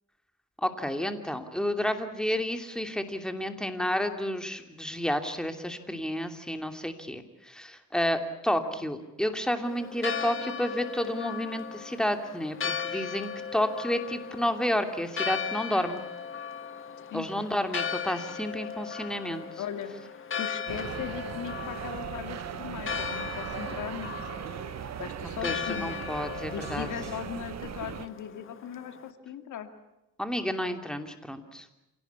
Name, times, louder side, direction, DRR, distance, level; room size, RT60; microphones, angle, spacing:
voice 1, 0.6-16.0 17.1-19.4 25.4-26.9 30.2-31.7, equal, ahead, 6 dB, 2.9 m, -31 dB
Church bell, 9.6-29.1, left 7 dB, 45° left, 1.8 m, -37 dB
voice 2, 17.1-17.6 19.6-19.9 20.4-24.1 25.0-26.0 26.5-29.7, left 8 dB, 75° left, 8 dB, 2.4 m, -38 dB
sound 1, 20.7-28.1, right 10 dB, 60° right, 1.2 m, -38 dB
27.5 x 18.0 x 8.3 m, 0.94 s
cardioid pair, 90°, 30 cm